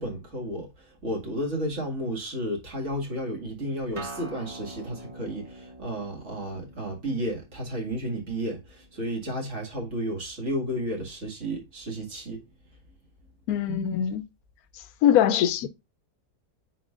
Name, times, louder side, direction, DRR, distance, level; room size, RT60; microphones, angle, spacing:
voice 1, 0.0-12.5, equal, 55° right, 2.2 m, -32 dB
Acoustic guitar, 4.0-9.1, right 2 dB, 20° right, 1.5 m, -45 dB
voice 2, 13.5-14.2 15.0-15.7, left 10 dB, 90° left, 1.1 m, -22 dB
8.9 x 4.4 x 2.4 m
omnidirectional pair, 1.5 m